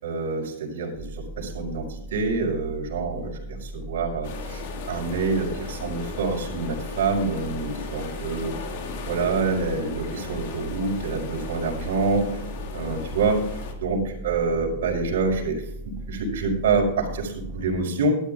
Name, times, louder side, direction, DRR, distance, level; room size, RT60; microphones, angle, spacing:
voice 1, 0.0-1.8 2.1-4.6 4.9-8.5 9.1-12.3 12.7-13.4 13.8-18.2, right 4 dB, 75° right, -1 dB, 5.3 m, -26 dB
sound 1, 0.9-17.8, right 1 dB, 20° left, 5.4 m, -38 dB
sound 2, 4.2-13.7, left 5 dB, 50° left, 2.0 m, -37 dB
13.0 x 12.0 x 3.7 m, 0.71 s
supercardioid pair, 170°, 0 cm